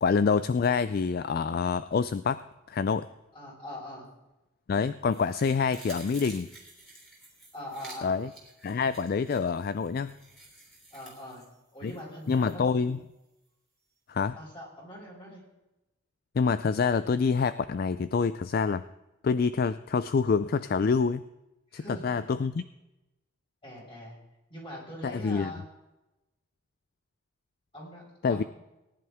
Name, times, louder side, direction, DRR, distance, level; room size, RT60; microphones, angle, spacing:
voice 1, 0.0-2.4 2.7-3.1 4.7-6.5 8.0-8.3 8.6-10.1 11.8-11.9 12.3-13.0 14.1-14.4 16.3-18.8 19.2-21.2 21.7-22.6 25.0-25.5 28.2-28.4, left 5 dB, 45° left, 14 dB, 0.3 m, -26 dB
voice 2, 3.3-4.1 7.5-8.2 10.9-11.4 11.7-12.7 14.4-15.4 21.7-22.2 23.6-24.2 24.5-25.7 27.7-28.5, equal, 25° left, -4 dB, 5.1 m, -42 dB
sound 1, 5.1-12.5 12.9-13.0, right 2 dB, ahead, 3.3 m, -51 dB
18.5 x 10.5 x 3.5 m, 0.97 s
head